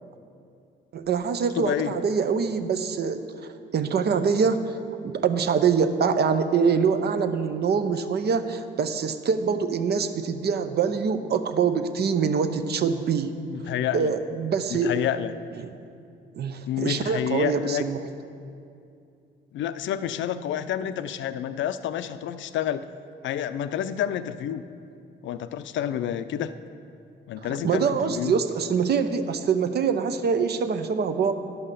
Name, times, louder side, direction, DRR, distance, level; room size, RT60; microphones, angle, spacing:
voice 1, 0.9-4.8 5.0-13.6 13.9-14.9 15.6-15.7 16.3-18.0 27.5-31.3, right 6 dB, 55° right, 9 dB, 0.7 m, -24 dB
voice 2, 1.5-1.9 13.5-14.1 14.7-15.3 16.7-17.8 19.5-22.9 23.2-24.6 25.2-26.5 27.3-28.3, left 10 dB, 70° left, 12 dB, 0.5 m, -29 dB
11.0 x 5.6 x 6.7 m, 2.5 s
cardioid pair, 90°, 20 cm